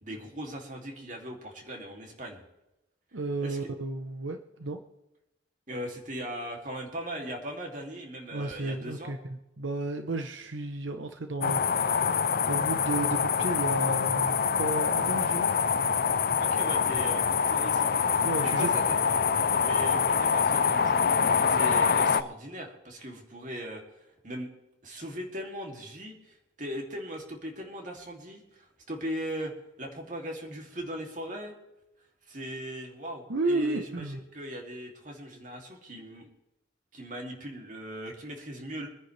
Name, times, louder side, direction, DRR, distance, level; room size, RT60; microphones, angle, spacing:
voice 1, 0.0-2.4 3.4-3.6 5.7-9.1 16.4-17.9 18.4-19.0 19.6-21.0 21.5-23.8 24.2-24.5 24.8-31.5 32.3-36.3 36.9-38.9, equal, 40° right, 1 dB, 2.8 m, -39 dB
voice 2, 3.1-4.8 8.3-12.2 12.5-15.5 18.2-18.8 33.3-34.2, right 2 dB, 85° right, 7 dB, 1.0 m, -33 dB
sound 1, 11.4-22.2, left 6 dB, 50° left, 0.6 m, -25 dB
25.0 x 10.0 x 3.4 m, 0.93 s
head